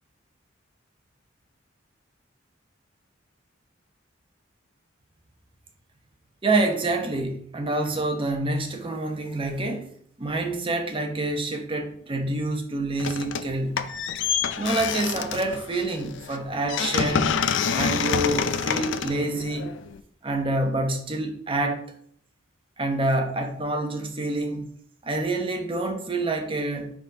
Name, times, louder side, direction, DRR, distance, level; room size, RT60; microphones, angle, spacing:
voice 1, 6.4-9.9 10.2-13.7 14.6-17.3 17.7-19.8 20.2-21.9 22.8-24.7 25.0-26.9, right 2 dB, 30° right, 0.9 m, -27 dB
sound 1, 13.0-13.5 13.8-20.0, left 7 dB, 70° left, 0.4 m, -27 dB
4.9 x 4.1 x 5.0 m
head